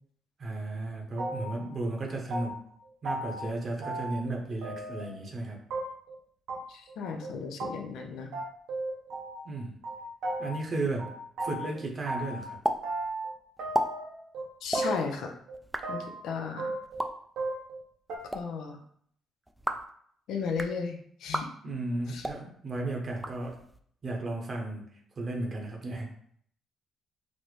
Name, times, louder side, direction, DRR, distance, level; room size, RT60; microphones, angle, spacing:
voice 1, 0.4-2.6 3.0-5.6 9.4-9.7 10.4-11.1 11.4-12.6 21.6-23.6 24.0-24.9 25.2-26.1, right 2 dB, 45° right, 1 dB, 0.8 m, -34 dB
sound 1, 1.2-1.7 2.0-2.8 3.1-3.5 3.8-4.4 4.6-5.2 5.7-6.2 6.5-6.6 6.9-7.0 7.2-7.3 7.6-7.7 8.0-8.1 8.3-9.5 9.8-10.7 11.0-12.5 12.8-13.3 13.6-14.5 14.7-15.2 15.5-16.2 16.6-17.1 17.4-17.8 18.1-18.2, right 2 dB, 85° right, 0.8 m, -35 dB
voice 2, 6.7-8.3 14.6-15.3 15.9-16.7 18.3-18.8 20.3-21.5 22.1-22.2, left 5 dB, 85° left, 4 dB, 0.5 m, -35 dB
sound 2, 12.6-12.8 13.0-13.1 13.6-13.9 14.6-14.8 15.5-15.8 16.8-17.1 18.1-18.4 19.5-19.9 20.4-20.7 21.3-21.5 22.1-22.4 23.1-23.8, equal, 5° right, 0.3 m, -32 dB
4.0 x 2.0 x 3.1 m, 0.62 s
cardioid pair, 90°, 0 cm